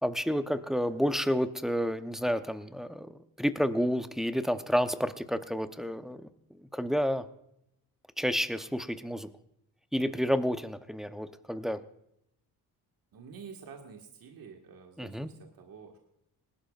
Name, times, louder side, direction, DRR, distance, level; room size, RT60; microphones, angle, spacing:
voice 1, 0.0-6.3 6.6-7.2 8.2-9.3 9.9-11.8 15.0-15.3, equal, ahead, 9 dB, 0.8 m, -30 dB
voice 2, 13.1-16.0, right 6 dB, 60° right, 1 dB, 1.9 m, -48 dB
19.5 x 12.0 x 2.5 m, 0.78 s
supercardioid pair, 70°, 39 cm